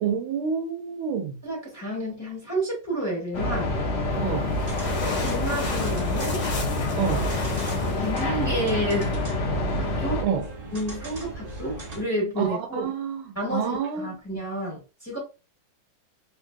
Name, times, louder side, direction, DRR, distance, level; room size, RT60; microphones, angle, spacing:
voice 1, 0.0-1.4 4.2-4.5 6.9-7.3 10.2-10.4 12.4-13.2 13.5-14.1, right 7 dB, 90° right, 1.6 m, -28 dB
voice 2, 1.4-3.8 5.2-6.4 6.9-7.1 8.0-9.4 10.0-10.3 10.7-12.8 13.3-15.2, right 1 dB, 10° left, 1.4 m, -30 dB
sound 1, 3.3-10.2, left 2 dB, 65° left, 0.6 m, -27 dB
sound 2, 4.1-9.1, left 4 dB, 50° left, 1.3 m, -36 dB
sound 3, 4.6-12.0, right 2 dB, 30° right, 0.8 m, -38 dB
3.6 x 3.3 x 2.3 m
omnidirectional pair, 2.2 m